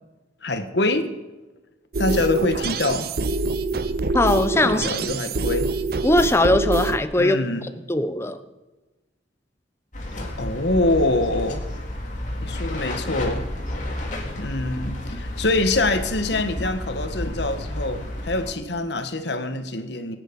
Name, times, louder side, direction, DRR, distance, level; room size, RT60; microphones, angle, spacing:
voice 1, 0.4-1.1 2.0-3.1 4.6-5.7 7.1-7.7 10.4-11.6 12.4-13.5 14.4-20.2, left 2 dB, 65° left, 8 dB, 1.4 m, -24 dB
sound 1, 1.9-7.0, right 3 dB, 55° right, 0.6 m, -25 dB
voice 2, 4.1-4.9 6.0-8.4, left 1 dB, 15° left, 10 dB, 0.7 m, -20 dB
sound 2, 9.9-18.5, left 1 dB, 40° left, 2.2 m, -31 dB
23.5 x 9.2 x 5.3 m, 1.1 s
head